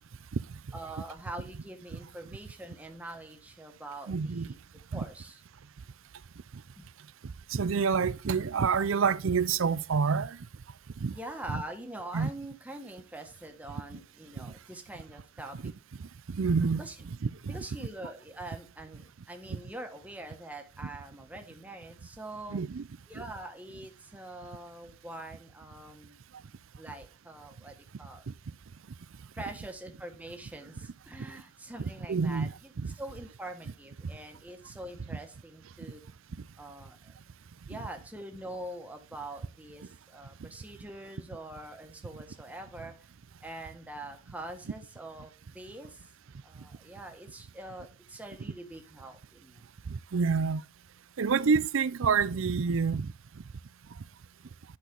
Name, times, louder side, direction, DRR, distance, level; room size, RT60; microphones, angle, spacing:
voice 1, 0.7-4.6 4.9-5.4 6.8-6.9 11.1-15.7 16.8-16.9 17.5-22.6 23.1-26.2 26.8-28.3 29.3-36.0 36.6-37.1 37.7-43.0 43.4-46.0 46.4-49.6, right 1 dB, 5° right, 1.5 m, -44 dB
voice 2, 4.1-4.5 4.9-5.0 7.5-10.4 11.0-11.1 11.5-11.6 12.1-12.3 14.4-14.5 15.6-15.7 16.3-16.8 17.2-17.6 22.5-22.9 32.1-32.9 35.1-35.2 49.9-50.6 51.2-53.1, right 5 dB, 65° right, 0.5 m, -28 dB
11.0 x 6.1 x 3.8 m
head